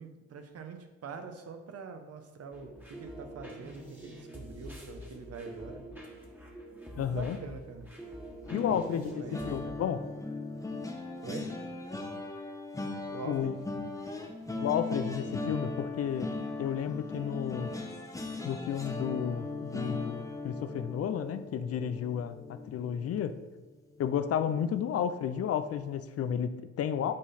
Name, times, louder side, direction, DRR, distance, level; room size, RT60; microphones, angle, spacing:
voice 1, 0.0-5.8 7.0-7.9 8.7-9.4 11.2-11.5 13.1-13.6, right 5 dB, 55° right, 7 dB, 0.9 m, -44 dB
sound 1, 2.5-9.6, right 1 dB, 5° right, 1.5 m, -46 dB
voice 2, 7.0-7.4 8.5-10.0 13.2-13.5 14.6-16.3 16.6-17.7 18.4-23.4 24.0-27.1, left 8 dB, 55° left, 11 dB, 0.5 m, -32 dB
sound 2, 8.5-23.6 24.0-24.3 24.6-24.8, left 2 dB, 10° left, 0.9 m, -39 dB
8.8 x 3.9 x 4.2 m, 1.2 s
cardioid pair, 90°, 30 cm